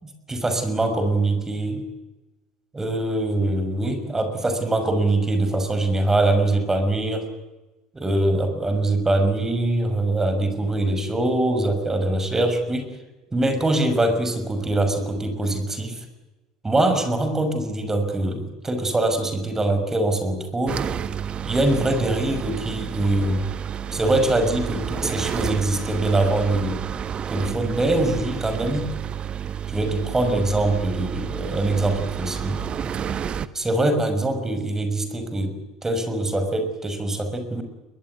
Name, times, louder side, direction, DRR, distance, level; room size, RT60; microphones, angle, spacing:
voice 1, 0.0-1.8 2.7-7.3 7.9-13.0 13.3-16.1 16.6-20.9 21.5-23.5 23.9-26.8 27.3-28.9 29.7-32.6 33.5-37.6, right 2 dB, 15° right, 8 dB, 6.1 m, -23 dB
sound 1, 20.7-33.5, right 8 dB, 35° right, 1.3 m, -30 dB
22.5 x 21.5 x 9.6 m, 1.1 s
figure-of-eight pair, 70°, 3 cm